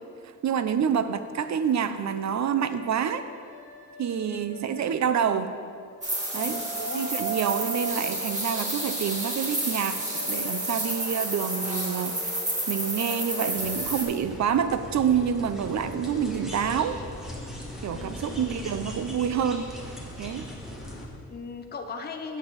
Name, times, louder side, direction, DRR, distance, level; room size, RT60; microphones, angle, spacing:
voice 1, 0.4-3.2 4.0-5.6 6.3-6.6 6.9-12.4 12.7-17.0 17.8-19.7 20.2-20.5, right 8 dB, 65° right, 11 dB, 0.6 m, -27 dB
sound 1, 1.9-5.5 5.9-11.1 11.6-17.2, right 3 dB, 65° left, 2.2 m, -41 dB
voice 2, 4.3-4.6 6.4-7.0 17.9-18.6 20.7-22.4, left 4 dB, 30° left, 4 dB, 0.7 m, -40 dB
sound 2, 6.0-14.0, right 1 dB, 25° right, 2.3 m, -31 dB
sound 3, 13.5-21.0, left 1 dB, ahead, 1.4 m, -39 dB
8.4 x 6.2 x 7.4 m, 2.4 s
wide cardioid pair, 130°, 30 cm